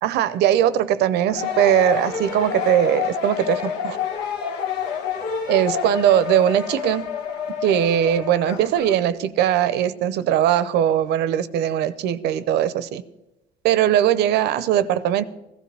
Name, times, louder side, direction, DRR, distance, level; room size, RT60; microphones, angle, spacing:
voice 1, 0.0-4.0 5.5-7.0 7.6-13.0 13.6-15.3, right 11 dB, 80° right, 15 dB, 0.7 m, -20 dB
sound 1, 1.3-9.0, left 8 dB, 80° left, 1.5 m, -28 dB
15.5 x 15.0 x 3.4 m, 0.96 s
cardioid pair, 110°, 17 cm